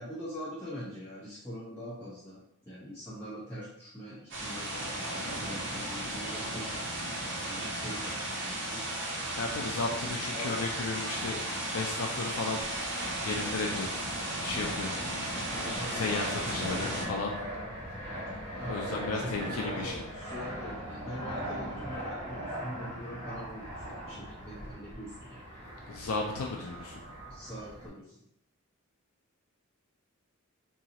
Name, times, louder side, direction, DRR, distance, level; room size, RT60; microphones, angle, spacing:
voice 1, 0.0-6.9 7.5-8.8 10.3-10.6 15.3-16.7 18.5-25.4 27.3-28.2, equal, 10° left, -13 dB, 1.0 m, -43 dB
sound 1, 4.3-17.1, right 1 dB, 55° right, 0.8 m, -35 dB
voice 2, 9.4-11.4 11.7-12.6 13.2-13.9 14.4-14.9 15.9-17.3 18.7-19.9 25.9-27.0, left 3 dB, 70° left, 0 dB, 0.4 m, -34 dB
Fixed-wing aircraft airplane, 12.6-27.9, equal, 30° right, 1.0 m, -40 dB
3.9 x 2.4 x 2.8 m, 0.75 s
head